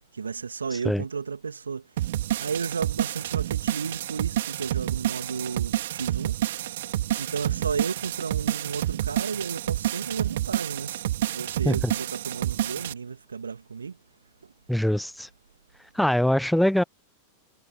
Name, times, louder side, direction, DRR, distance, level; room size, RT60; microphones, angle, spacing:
voice 1, 0.1-1.8 2.4-6.4 7.2-13.9, right 5 dB, 75° right, 2.6 m, -33 dB
sound 1, 2.0-12.9, right 13 dB, 55° right, 4.0 m, -29 dB
voice 2, 14.7-15.3 15.9-16.8, left 1 dB, ahead, 0.8 m, -23 dB
figure-of-eight pair, 90°, 0 cm